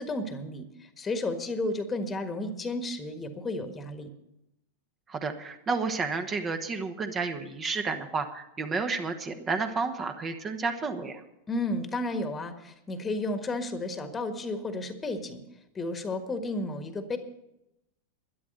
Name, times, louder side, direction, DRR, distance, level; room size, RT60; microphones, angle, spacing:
voice 1, 0.0-4.1 11.5-15.4 15.7-17.2, left 2 dB, 15° left, 8 dB, 1.5 m, -32 dB
voice 2, 5.1-11.2, right 4 dB, 20° right, 7 dB, 1.3 m, -31 dB
12.5 x 11.0 x 6.6 m, 0.86 s
figure-of-eight pair, 90°, 0 cm